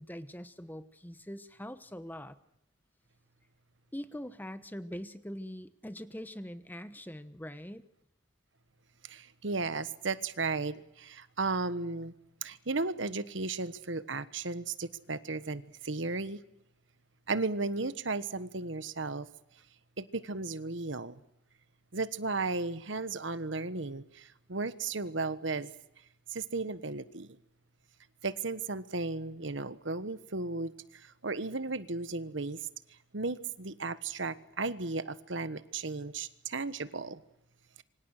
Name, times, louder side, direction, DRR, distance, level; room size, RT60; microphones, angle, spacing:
voice 1, 0.0-2.4 3.9-7.8, equal, 10° left, 12 dB, 1.1 m, -43 dB
voice 2, 9.0-12.1 12.4-16.4 17.3-19.3 20.0-21.2 21.9-25.7 26.3-27.4 28.2-32.7 33.1-37.2, right 3 dB, 75° right, 14 dB, 1.3 m, -35 dB
27.5 x 24.5 x 6.6 m, 0.80 s
head